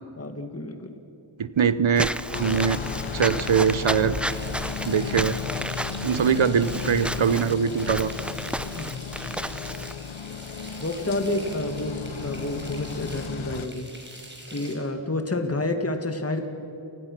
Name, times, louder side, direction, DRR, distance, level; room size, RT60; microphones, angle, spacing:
voice 1, 0.2-0.9 8.8-9.1 10.8-13.9 14.5-16.5, left 2 dB, 30° left, 6 dB, 1.9 m, -29 dB
voice 2, 1.4-2.8 3.1-4.2 4.8-5.4 6.0-8.1, right 7 dB, 70° right, 14 dB, 0.8 m, -22 dB
Walk footsteps / Squeak, 2.0-9.9, equal, ahead, 0.5 m, -32 dB
sound 1, 2.3-13.7, left 7 dB, 70° left, 0.9 m, -35 dB
Frying (food), 4.2-14.7, right 1 dB, 20° right, 5.3 m, -45 dB
29.0 x 19.5 x 6.0 m, 2.8 s
wide cardioid pair, 60°, 49 cm